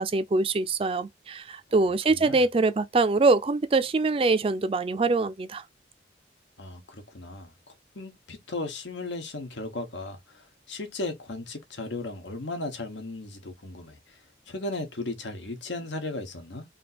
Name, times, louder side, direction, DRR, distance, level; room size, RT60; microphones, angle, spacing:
voice 1, 0.0-5.6, right 3 dB, 30° right, 0.4 m, -24 dB
voice 2, 2.1-2.4 6.6-14.2 14.5-16.6, left 2 dB, 85° left, 1.1 m, -36 dB
3.3 x 2.7 x 4.0 m
head